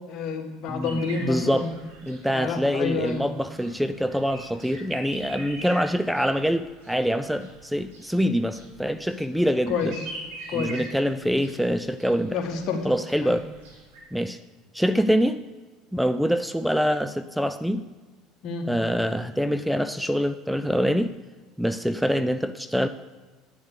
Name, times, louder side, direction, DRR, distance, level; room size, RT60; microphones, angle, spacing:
voice 1, 0.1-1.7 2.3-3.2 9.7-9.9 10.5-10.8 12.3-12.9 13.2-13.4 18.4-18.7, left 5 dB, 55° left, 3 dB, 1.7 m, -29 dB
voice 2, 0.7-1.7 2.0-9.9 10.5-12.4 12.8-13.5 14.1-14.4 14.7-15.4 15.9-17.8 18.7-21.2 21.6-22.9, equal, ahead, 11 dB, 0.4 m, -25 dB
sound 1, 0.8-14.0, right 1 dB, 80° right, 4.2 m, -43 dB
9.5 x 7.3 x 6.5 m, 1.3 s
supercardioid pair, 90°, 0 cm